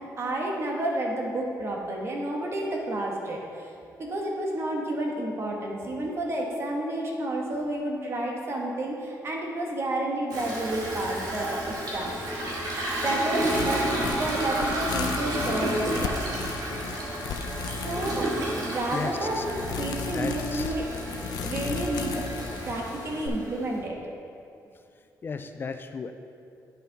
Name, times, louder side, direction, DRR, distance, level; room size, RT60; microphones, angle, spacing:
voice 1, 0.0-3.7 4.0-12.2 13.0-13.9 14.2-16.5 17.8-18.3 18.6-20.9 21.4-22.3 22.7-24.0, right 1 dB, 40° right, -1 dB, 1.3 m, -30 dB
Toilet flush, 10.3-23.7, right 1 dB, 80° right, 2.0 m, -32 dB
sound 1, 13.4-23.3, left 5 dB, 90° left, 0.5 m, -35 dB
voice 2, 18.9-19.4 20.1-20.7 25.2-26.1, left 5 dB, 30° left, 8 dB, 0.3 m, -35 dB
9.9 x 5.8 x 3.9 m, 2.6 s
cardioid pair, 140°, 7 cm